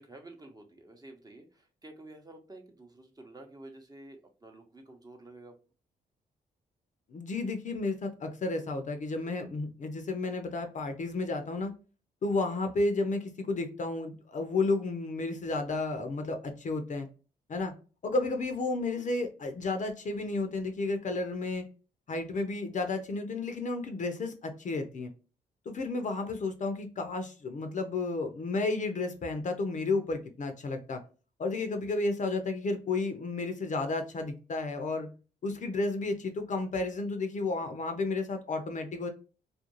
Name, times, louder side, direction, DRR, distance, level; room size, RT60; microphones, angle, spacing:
voice 1, 0.0-5.5 18.9-19.1, right 2 dB, 20° right, 4 dB, 0.7 m, -50 dB
voice 2, 7.1-11.7 12.2-17.1 17.5-17.7 18.0-21.6 22.1-25.1 25.7-31.0 31.4-35.1 35.4-39.1, left 3 dB, 45° left, 6 dB, 0.6 m, -32 dB
2.5 x 2.2 x 2.9 m, 0.35 s
supercardioid pair, 60°, 17 cm